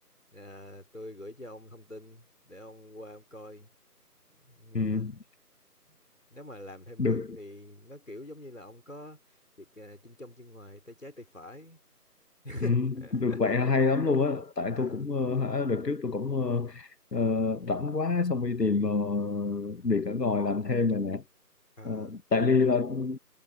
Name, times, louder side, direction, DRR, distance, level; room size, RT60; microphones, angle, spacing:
voice 1, 0.3-3.7 4.5-5.1 6.3-9.2 9.6-11.8 12.4-13.4 14.8-15.0 21.8-22.1, left 1 dB, 55° left, 4.4 m, -45 dB
voice 2, 4.7-5.2 7.0-7.4 12.6-21.2 21.8-23.2, left 4 dB, 90° left, 1.2 m, -27 dB
figure-of-eight pair, 175°, 48 cm